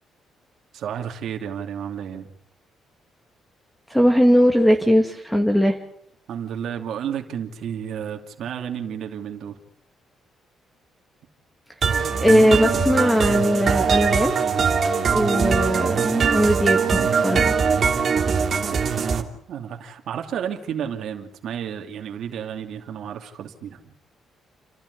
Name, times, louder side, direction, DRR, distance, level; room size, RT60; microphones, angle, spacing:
voice 1, 0.7-2.3 6.3-9.6 18.7-23.9, right 8 dB, 70° right, 4 dB, 2.7 m, -32 dB
voice 2, 3.9-5.8 12.2-14.3 15.1-17.5, equal, 5° left, 4 dB, 2.5 m, -19 dB
sound 1, 11.8-19.2, right 6 dB, 45° right, 2.9 m, -21 dB
30.0 x 12.5 x 9.8 m, 0.76 s
cardioid pair, 90°, 0 cm